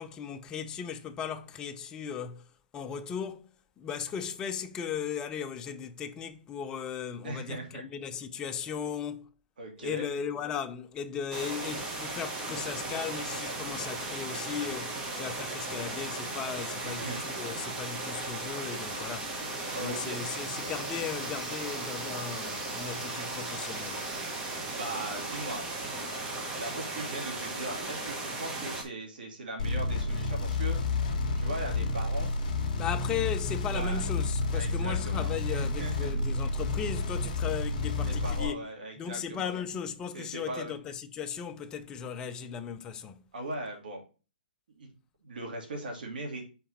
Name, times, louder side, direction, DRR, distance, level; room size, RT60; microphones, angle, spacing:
voice 1, 0.0-2.5 2.7-9.3 9.8-19.3 19.8-24.1 32.7-38.7 39.0-43.2, left 7 dB, 15° left, 0.4 m, -37 dB
voice 2, 7.2-7.8 9.6-10.1 16.8-17.6 19.7-20.2 24.8-25.7 26.5-30.8 31.4-32.3 33.7-34.0 34.5-36.1 38.1-39.6 40.1-40.7 43.3-44.0 44.8-44.9 45.2-46.5, right 1 dB, 70° right, 2.3 m, -39 dB
sound 1, 11.3-28.8, right 2 dB, 15° right, 1.2 m, -36 dB
sound 2, 29.6-38.5, left 3 dB, 45° left, 1.5 m, -30 dB
5.8 x 4.0 x 4.2 m
hypercardioid pair, 155°, 5 cm